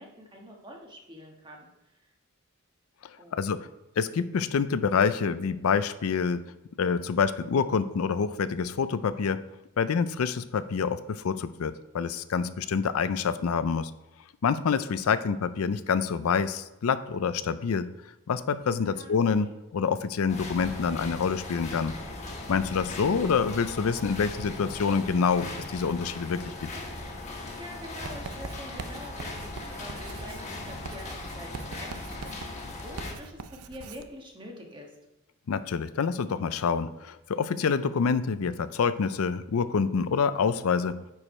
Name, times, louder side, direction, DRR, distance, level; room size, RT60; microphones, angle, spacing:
voice 1, 0.0-1.7 3.2-3.4 18.8-19.5 27.6-34.9, equal, 20° right, 0 dB, 1.4 m, -46 dB
voice 2, 3.0-3.7 4.0-6.4 6.8-9.4 9.8-13.9 14.4-17.9 18.3-21.9 22.5-26.7 35.5-41.0, left 6 dB, 75° left, 13 dB, 0.4 m, -27 dB
sound 1, 20.3-33.2, left 2 dB, 35° left, 1.3 m, -39 dB
Writing, 28.0-34.1, right 5 dB, 90° right, 0.5 m, -43 dB
9.9 x 4.8 x 4.3 m, 0.94 s
head